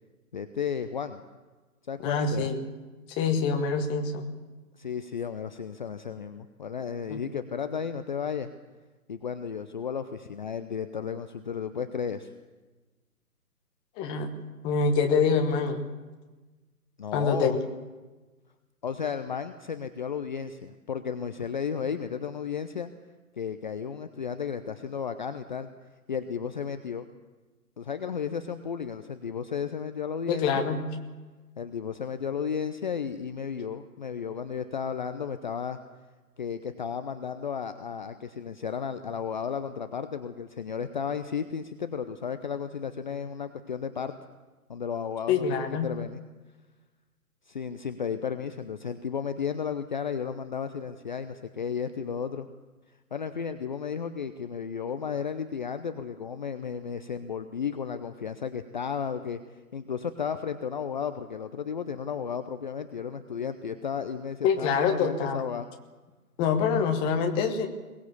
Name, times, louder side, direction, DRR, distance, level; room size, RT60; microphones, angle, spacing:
voice 1, 0.3-1.2 1.9-2.5 4.8-8.5 9.1-12.3 17.0-17.6 18.8-22.9 23.4-25.7 26.1-27.1 27.8-30.5 31.6-35.8 36.4-44.1 44.7-46.2 47.5-52.5 53.1-59.4 59.7-65.7, left 7 dB, 30° left, 10 dB, 0.8 m, -33 dB
voice 2, 2.0-2.6 3.1-4.3 7.1-7.2 14.0-14.3 14.6-15.8 17.1-17.6 30.3-30.8 45.3-45.9 64.4-65.4 66.4-67.7, left 5 dB, 10° left, 5 dB, 1.1 m, -25 dB
22.0 x 19.5 x 7.1 m, 1.2 s
figure-of-eight pair, 140°, 46 cm